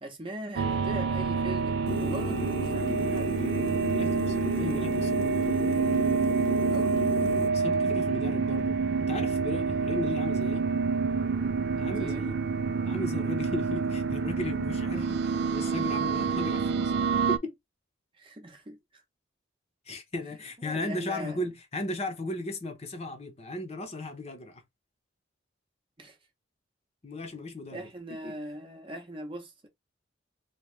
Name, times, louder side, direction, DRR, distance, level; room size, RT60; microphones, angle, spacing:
voice 1, 0.0-3.3 6.7-7.0 11.9-12.3 18.2-19.0 20.6-21.5 26.0-26.2 27.7-29.7, right 1 dB, 25° right, 0.7 m, -40 dB
sound 1, 0.6-17.4, right 5 dB, 55° right, 0.4 m, -28 dB
sound 2, 1.9-7.5, left 1 dB, 90° left, 0.7 m, -34 dB
voice 2, 3.9-5.5 7.5-10.7 11.8-12.3 12.8-16.9 17.3-17.5 19.9-24.6 27.0-27.9 28.2-28.3, left 2 dB, 35° left, 0.8 m, -36 dB
2.9 x 2.8 x 3.1 m
head